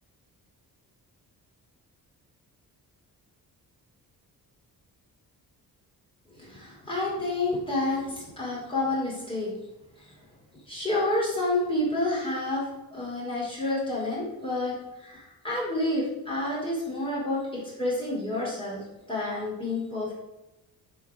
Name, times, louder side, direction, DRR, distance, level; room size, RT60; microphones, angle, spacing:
voice 1, 6.4-9.5 10.7-20.1, left 2 dB, 15° left, -6 dB, 4.6 m, -29 dB
10.0 x 5.8 x 8.3 m, 1.0 s
wide cardioid pair, 165°, 36 cm